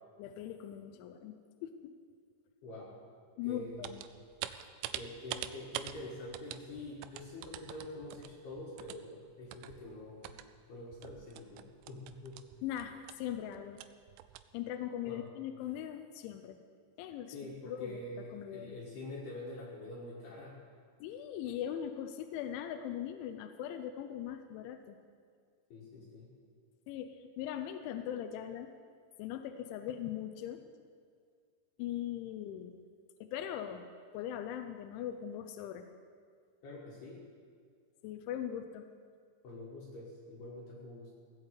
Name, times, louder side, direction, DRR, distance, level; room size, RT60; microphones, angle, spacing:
voice 1, 0.2-2.0 3.4-4.0 12.6-13.8 14.5-16.6 17.0-17.4 17.7-18.8 21.0-25.0 26.9-28.7 29.2-30.6 31.8-32.8 33.2-33.8 34.1-35.8 38.0-38.9, left 10 dB, 80° left, 7 dB, 3.0 m, -40 dB
voice 2, 2.6-3.0 3.4-4.0 4.9-10.4 10.7-12.4 15.0-15.3 17.3-20.6 25.7-26.3 36.6-37.2 39.4-41.1, left 2 dB, 60° left, -4 dB, 3.4 m, -46 dB
sound 1, 3.6-10.5 10.9-14.4, right 13 dB, 85° right, 2.9 m, -45 dB
16.5 x 8.6 x 8.1 m, 2.1 s
omnidirectional pair, 5.6 m